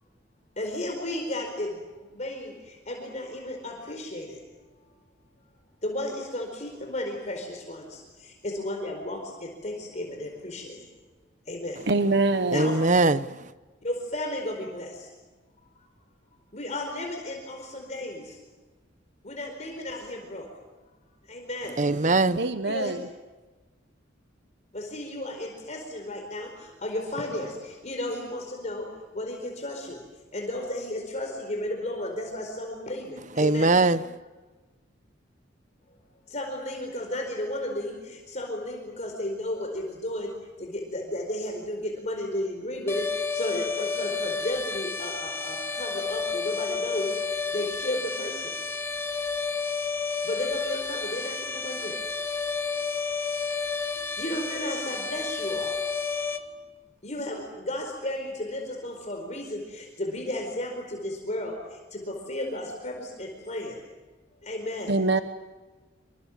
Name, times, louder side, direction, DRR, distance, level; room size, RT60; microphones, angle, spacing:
voice 1, 0.6-4.4 5.8-10.8 11.5-11.8 12.5-12.7 13.8-15.1 16.5-18.4 19.2-20.5 21.3-21.8 22.6-22.9 24.7-28.9 29.1-30.0 30.3-33.8 36.3-40.3 40.6-48.5 50.2-52.0 54.2-55.7 57.0-63.8 64.4-64.9, left 1 dB, 40° left, 4.6 m, -34 dB
voice 2, 11.9-12.7 22.3-23.1 64.9-65.2, right 2 dB, 60° right, 1.1 m, -24 dB
voice 3, 12.5-13.3 21.8-22.4 33.4-34.0, right 3 dB, 40° right, 0.9 m, -21 dB
sound 1, 42.9-56.4, left 5 dB, 15° left, 1.8 m, -31 dB
27.5 x 26.5 x 7.5 m
head